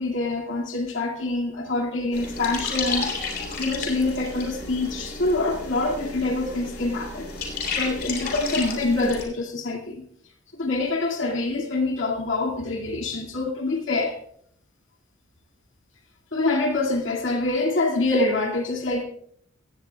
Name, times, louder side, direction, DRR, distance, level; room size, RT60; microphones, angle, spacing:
voice 1, 0.0-10.0 10.5-14.2 16.3-19.0, left 2 dB, 70° left, 1 dB, 2.2 m, -26 dB
sound 1, 2.1-9.2, left 4 dB, 50° left, 3.3 m, -32 dB
17.0 x 15.5 x 2.3 m, 0.66 s
head